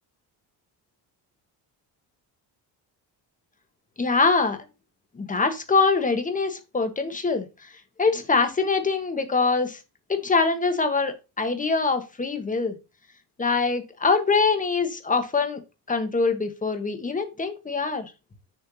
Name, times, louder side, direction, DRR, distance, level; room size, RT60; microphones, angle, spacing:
voice 1, 4.0-4.6 5.1-7.7 8.0-9.8 10.1-12.8 13.4-15.6 15.9-18.1, left 4 dB, 20° left, 7 dB, 1.3 m, -24 dB
6.8 x 3.4 x 6.1 m, 0.27 s
cardioid pair, 135°, 43 cm